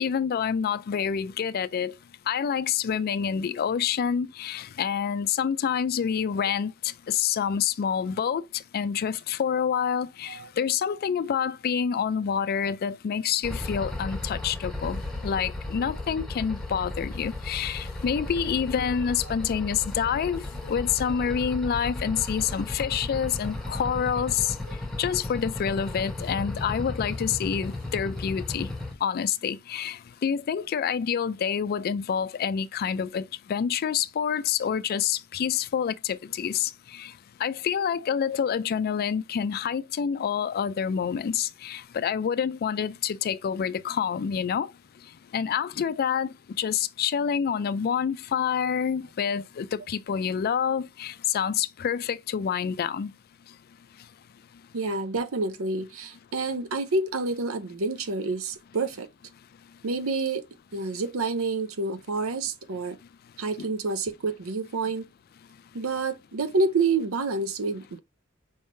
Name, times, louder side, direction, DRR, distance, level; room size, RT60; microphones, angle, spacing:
voice 1, 0.0-2.0 2.3-24.6 25.0-28.7 29.0-37.1 37.4-44.7 45.3-53.1 63.6-63.7, left 7 dB, 45° left, 0.3 m, -27 dB
sound 1, 13.4-28.9, left 2 dB, ahead, 1.0 m, -35 dB
voice 2, 54.7-59.1 59.8-60.5 60.7-63.0 63.4-65.1 65.7-68.0, right 3 dB, 80° right, 0.7 m, -28 dB
5.3 x 3.7 x 2.6 m
head